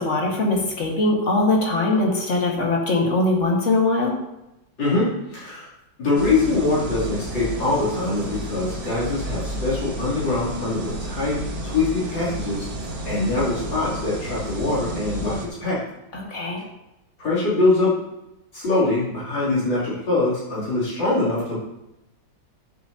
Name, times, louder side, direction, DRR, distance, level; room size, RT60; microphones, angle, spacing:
voice 1, 0.0-4.1 16.1-16.6, left 2 dB, 40° left, -1 dB, 2.1 m, -21 dB
voice 2, 4.8-5.7 6.0-11.4 11.6-12.6 13.1-15.8 17.2-17.9 18.5-21.6, left 2 dB, 80° left, -9 dB, 4.1 m, -23 dB
sound 1, 6.1-15.5, right 1 dB, 65° right, 2.3 m, -32 dB
13.5 x 7.5 x 2.9 m, 0.90 s
omnidirectional pair, 2.0 m